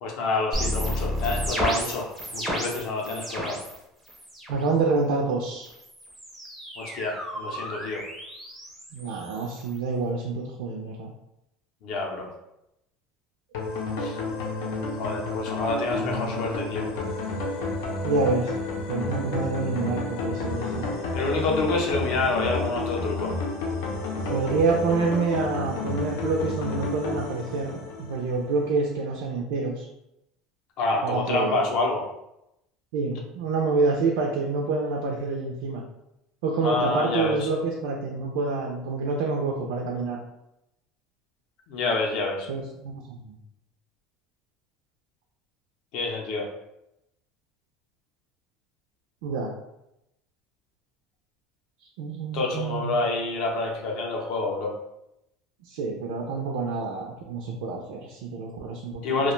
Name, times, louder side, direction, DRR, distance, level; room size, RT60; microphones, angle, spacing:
voice 1, 0.0-3.6 6.8-8.0 11.8-12.3 14.0-14.2 15.0-16.9 21.1-23.4 30.8-32.1 36.6-37.4 41.7-42.5 45.9-46.5 52.3-54.7 59.0-59.3, left 3 dB, 50° left, 0 dB, 0.5 m, -27 dB
sound 1, 0.5-3.8 4.1-4.6 5.6-9.8, equal, 5° right, 0.4 m, -32 dB
voice 2, 4.5-5.7 8.9-11.1 16.0-16.5 18.0-18.5 18.9-20.9 24.3-29.9 31.0-31.6 32.9-35.8 36.4-40.2 42.5-43.3 49.2-49.5 52.0-53.0 55.7-59.3, right 4 dB, 70° right, 0 dB, 0.4 m, -27 dB
sound 2, 13.5-28.6, left 3 dB, 90° left, 0.6 m, -31 dB
2.4 x 2.2 x 3.0 m, 0.86 s
cardioid pair, 175°, 0 cm